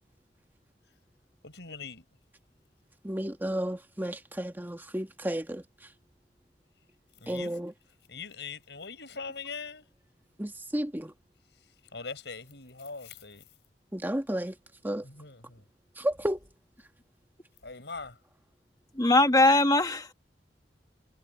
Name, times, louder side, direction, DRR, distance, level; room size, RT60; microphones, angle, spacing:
voice 1, 1.4-2.0 7.2-7.6 8.1-9.9 11.9-13.4 15.0-15.6 17.6-18.2, left 4 dB, 70° left, 7.7 m, -41 dB
voice 2, 3.0-5.6 7.3-7.7 10.4-11.1 13.9-14.5 14.8-15.0 16.0-16.4, right 1 dB, 10° right, 1.5 m, -32 dB
voice 3, 19.0-20.1, left 2 dB, 20° left, 1.7 m, -21 dB
head